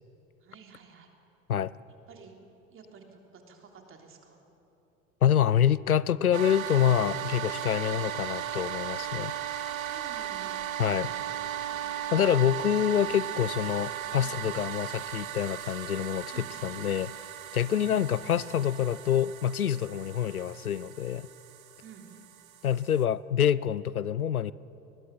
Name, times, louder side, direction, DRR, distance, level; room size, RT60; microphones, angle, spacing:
voice 1, 0.4-1.1 2.1-2.4 2.7-4.4 9.1-9.2 9.8-10.6 10.9-12.0 12.6-12.7 14.2-14.4 16.3-16.5 17.7-17.9 21.8-22.1, right 6 dB, 30° right, 2 dB, 3.4 m, -51 dB
voice 2, 5.2-9.3 10.8-11.1 12.1-17.1 17.5-21.3 22.6-24.5, left 9 dB, 85° left, 20 dB, 0.6 m, -26 dB
sound 1, 6.3-23.0, right 10 dB, 70° right, 1.2 m, -37 dB
21.0 x 20.0 x 7.6 m, 2.9 s
figure-of-eight pair, 75°, 42 cm